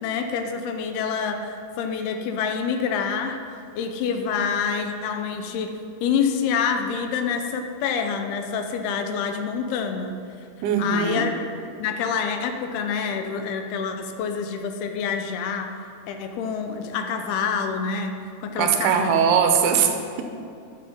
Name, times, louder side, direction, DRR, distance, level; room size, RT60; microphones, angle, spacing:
voice 1, 0.0-3.4 3.8-10.2 10.8-11.3 11.8-15.8 16.1-18.1 18.4-19.1, left 6 dB, 80° left, 6 dB, 2.6 m, -27 dB
voice 2, 10.6-11.3 18.6-20.2, right 7 dB, 80° right, 5 dB, 2.7 m, -21 dB
12.0 x 7.2 x 5.4 m, 2.4 s
omnidirectional pair, 4.6 m